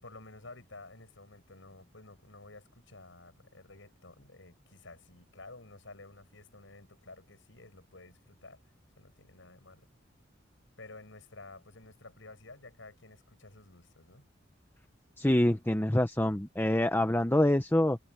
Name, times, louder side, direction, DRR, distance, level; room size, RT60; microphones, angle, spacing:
voice 1, 0.0-8.7 9.0-9.9 10.8-14.3, left 2 dB, 85° left, 5.9 m, -52 dB
voice 2, 15.2-18.0, left 1 dB, 10° left, 0.8 m, -26 dB
head